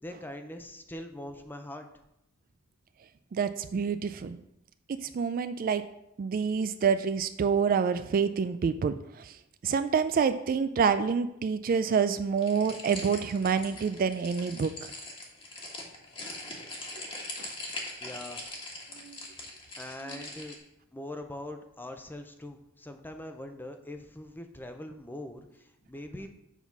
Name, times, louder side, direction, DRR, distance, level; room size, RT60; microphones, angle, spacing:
voice 1, 0.0-1.9 18.0-18.4 19.7-20.6 20.9-26.3, left 1 dB, 10° left, 6 dB, 0.6 m, -42 dB
voice 2, 3.3-4.4 4.9-5.8 6.2-9.3 9.6-14.9 17.4-17.5 19.0-19.2 20.1-20.2, right 6 dB, 40° right, 11 dB, 0.3 m, -27 dB
sound 1, 12.4-20.6, left 2 dB, 25° left, 1.3 m, -41 dB
7.2 x 4.1 x 5.9 m, 0.83 s
head